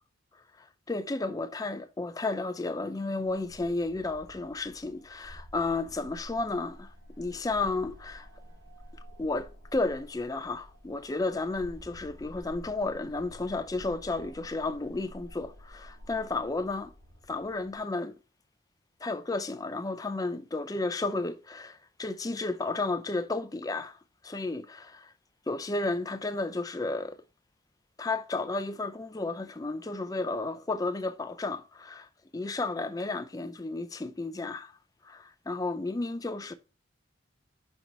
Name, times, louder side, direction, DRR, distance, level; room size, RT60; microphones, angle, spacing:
voice 1, 0.6-8.3 9.2-16.9 17.3-18.2 19.0-24.0 24.2-25.1 25.5-27.2 28.0-32.1 32.3-34.7 35.0-36.5, left 3 dB, 20° left, 0.4 m, -32 dB
sound 1, 3.2-17.8, equal, 85° right, 3.1 m, -50 dB
5.3 x 4.6 x 3.9 m
head